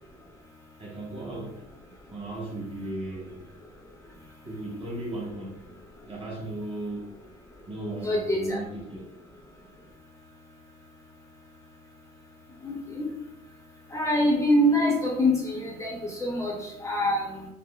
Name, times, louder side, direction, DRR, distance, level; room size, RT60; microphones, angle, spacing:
voice 1, 0.8-1.7 2.1-3.3 4.4-5.6 6.0-7.2 7.7-9.1, right 1 dB, 35° right, -2 dB, 0.9 m, -36 dB
voice 2, 8.0-8.6 12.6-13.0 13.9-17.5, left 1 dB, 15° left, -2 dB, 0.6 m, -25 dB
3.5 x 2.0 x 2.3 m, 0.80 s
cardioid pair, 110°, 17 cm